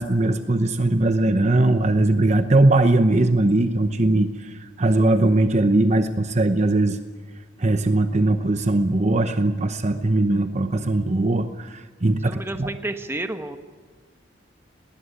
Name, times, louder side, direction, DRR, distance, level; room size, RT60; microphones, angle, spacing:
voice 1, 0.0-7.0 7.6-12.7, right 2 dB, 40° right, 9 dB, 0.8 m, -20 dB
voice 2, 12.2-13.6, right 2 dB, 15° right, 8 dB, 1.2 m, -30 dB
19.5 x 19.5 x 9.9 m, 1.5 s
head